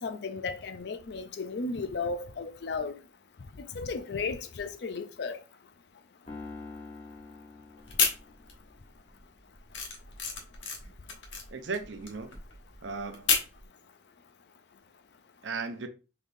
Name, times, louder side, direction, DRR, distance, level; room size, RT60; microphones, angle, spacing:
voice 1, 0.0-3.0 3.7-5.4, left 4 dB, 60° left, 0.4 m, -34 dB
Piano, 6.3-8.7, left 3 dB, 30° left, 1.0 m, -45 dB
sound 1, 7.8-8.8 9.1-13.6, left 5 dB, 80° left, 1.0 m, -31 dB
voice 2, 11.5-12.3 12.8-13.4 15.4-15.9, right 4 dB, 75° right, 0.6 m, -36 dB
4.0 x 3.4 x 2.6 m
head